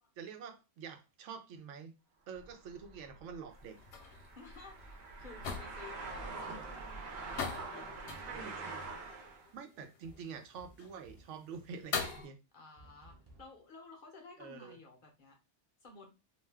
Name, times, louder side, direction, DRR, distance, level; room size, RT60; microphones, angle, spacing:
voice 1, 0.2-1.9 2.3-3.8 8.3-8.8 9.5-12.4 14.4-14.8, right 6 dB, 90° right, 0.9 m, -47 dB
sound 1, 2.3-9.5, right 3 dB, 65° right, 0.9 m, -45 dB
sound 2, 3.5-12.3, left 5 dB, 75° left, 0.9 m, -44 dB
voice 2, 4.4-6.7 7.2-8.4 12.5-15.4 15.8-16.1, left 3 dB, 55° left, 0.7 m, -54 dB
sound 3, 10.0-11.4 12.8-13.6, right 1 dB, 30° right, 0.5 m, -59 dB
2.5 x 2.2 x 3.3 m
omnidirectional pair, 1.2 m